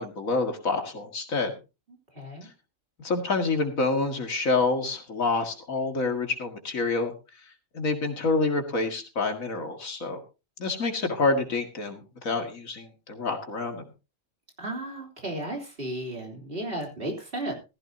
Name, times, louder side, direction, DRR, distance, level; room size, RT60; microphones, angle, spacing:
voice 1, 0.0-1.5 3.0-7.1 7.7-10.2 10.6-13.8, left 3 dB, 85° left, 5 dB, 2.4 m, -27 dB
voice 2, 1.9-2.5 14.6-17.5, right 1 dB, 45° right, 0 dB, 3.5 m, -34 dB
15.0 x 15.0 x 2.8 m, 0.29 s
omnidirectional pair, 1.4 m